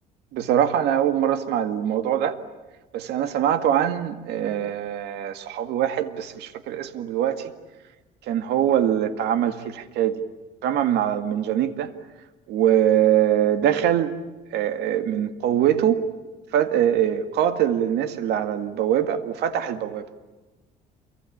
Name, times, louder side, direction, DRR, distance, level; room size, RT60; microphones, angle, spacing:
voice 1, 0.3-2.4 2.9-7.5 8.3-10.2 10.6-11.9 12.5-14.1 14.5-16.0 16.5-20.0, right 10 dB, 80° right, 9 dB, 2.0 m, -23 dB
28.0 x 24.0 x 8.6 m, 1.2 s
cardioid pair, 110°, 17 cm